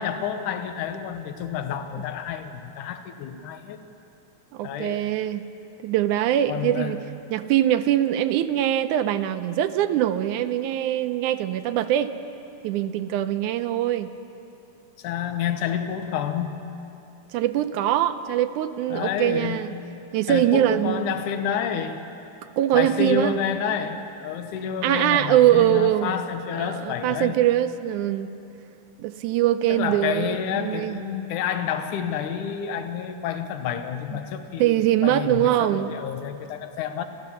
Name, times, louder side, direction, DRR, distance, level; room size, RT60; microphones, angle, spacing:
voice 1, 0.0-3.8 4.6-5.0 6.5-6.9 15.0-16.6 18.9-19.6 20.3-22.1 22.7-27.4 29.7-37.0, left 8 dB, 75° left, 7 dB, 2.5 m, -29 dB
voice 2, 4.5-5.4 5.8-7.0 7.3-12.1 12.6-14.1 17.3-19.7 20.1-21.1 22.6-23.3 24.8-26.1 26.5-28.3 29.0-31.0 34.1-34.2 34.6-35.9, right 12 dB, 80° right, 10 dB, 2.1 m, -22 dB
27.0 x 15.0 x 7.1 m, 2.8 s
omnidirectional pair, 3.6 m